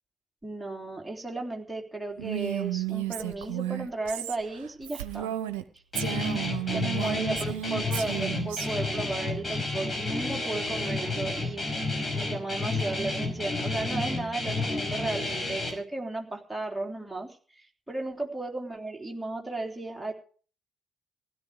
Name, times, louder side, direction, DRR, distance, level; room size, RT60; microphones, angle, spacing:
voice 1, 0.4-5.3 6.7-11.7 12.1-20.1, right 2 dB, 5° right, 0 dB, 3.6 m, -35 dB
Female speech woman speaking, 2.2-5.6 5.9-8.7, right 13 dB, 75° right, 0.9 m, -33 dB
Guitar, 5.9-15.7, left 2 dB, 30° left, 5.6 m, -31 dB
16.5 x 11.5 x 4.9 m, 0.41 s
figure-of-eight pair, 45°, 0 cm